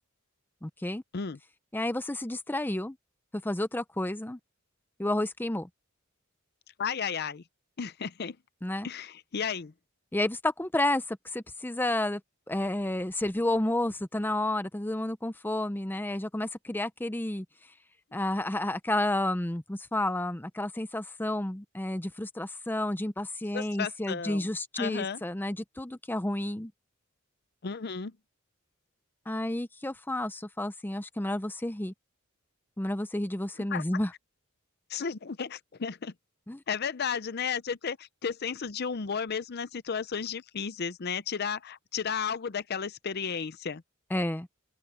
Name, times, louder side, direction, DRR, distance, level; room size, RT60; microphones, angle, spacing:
voice 1, 0.6-1.0 1.7-3.0 3.4-4.4 5.0-5.7 8.6-8.9 10.1-12.2 12.5-17.4 18.1-26.7 29.3-31.9 32.8-34.1 36.5-36.6 44.1-44.5, left 1 dB, 10° left, 0.6 m, -31 dB
voice 2, 6.8-7.4 7.8-8.4 8.8-9.7 23.5-24.5 24.8-25.2 27.6-28.2 33.7-33.8 34.9-36.1 36.7-43.8, left 6 dB, 50° left, 0.6 m, -33 dB
open air
head